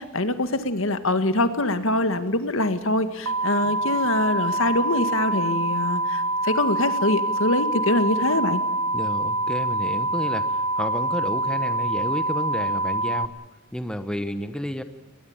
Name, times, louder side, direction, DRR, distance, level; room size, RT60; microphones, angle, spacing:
voice 1, 0.0-8.6, left 1 dB, 65° left, 10 dB, 1.9 m, -24 dB
sound 1, 3.3-13.3, right 1 dB, 75° right, 0.8 m, -25 dB
voice 2, 8.9-13.3 13.7-14.8, equal, 5° left, 9 dB, 1.0 m, -31 dB
22.0 x 20.0 x 8.8 m, 1.1 s
head